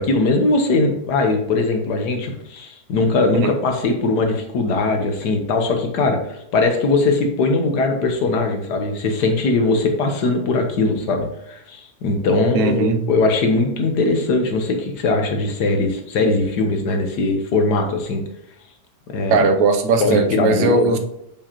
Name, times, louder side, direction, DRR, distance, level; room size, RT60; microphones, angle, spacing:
voice 1, 0.0-18.2 19.1-19.5 20.0-20.9, left 3 dB, 85° left, 4 dB, 1.6 m, -20 dB
voice 2, 12.5-13.0 19.3-21.0, right 3 dB, 80° right, 6 dB, 1.3 m, -18 dB
6.9 x 5.4 x 2.9 m, 0.82 s
omnidirectional pair, 1.7 m